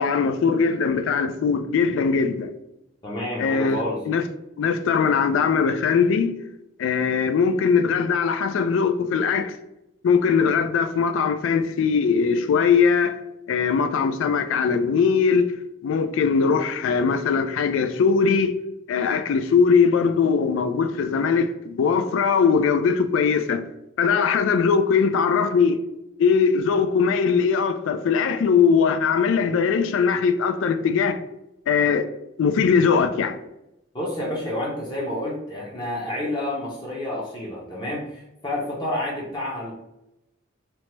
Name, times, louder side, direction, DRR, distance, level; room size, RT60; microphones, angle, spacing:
voice 1, 0.0-2.5 3.4-4.2 4.6-6.4 6.8-9.6 10.0-13.2 13.5-15.5 15.8-18.5 18.9-23.6 24.0-25.8 26.2-31.2 31.7-32.0 32.4-33.4, left 5 dB, 85° left, 0.3 m, -20 dB
voice 2, 3.0-4.0 33.9-39.7, left 1 dB, 25° left, 0.5 m, -29 dB
2.8 x 2.1 x 3.0 m
head